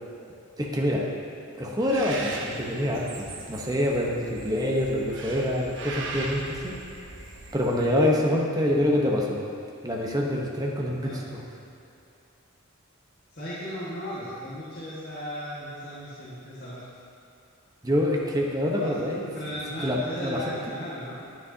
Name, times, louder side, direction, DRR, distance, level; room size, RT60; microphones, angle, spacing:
voice 1, 0.6-1.1 1.6-6.8 7.5-9.4 9.8-11.4 17.8-19.3 19.8-20.4, left 1 dB, 20° right, -2 dB, 0.9 m, -26 dB
Bird, 1.8-8.2, right 2 dB, 60° right, 0.9 m, -39 dB
voice 2, 13.3-16.8 18.8-19.0 19.3-21.2, equal, 50° left, -10 dB, 1.6 m, -36 dB
9.6 x 9.4 x 2.8 m, 2.7 s
head